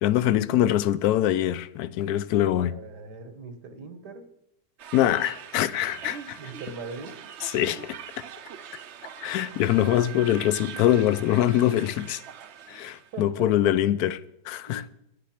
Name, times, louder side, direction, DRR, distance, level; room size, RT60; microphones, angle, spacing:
voice 1, 0.0-2.7 4.9-6.4 7.4-8.2 9.2-12.2 12.7-14.2 14.4-14.8, left 12 dB, 75° left, 1.1 m, -24 dB
voice 2, 2.5-4.3 6.4-7.2 13.1-13.8 14.7-14.9, right 4 dB, 85° right, 1.9 m, -41 dB
sound 1, 4.8-13.2, right 9 dB, 60° right, 0.8 m, -42 dB
10.5 x 9.9 x 5.7 m
omnidirectional pair, 1.7 m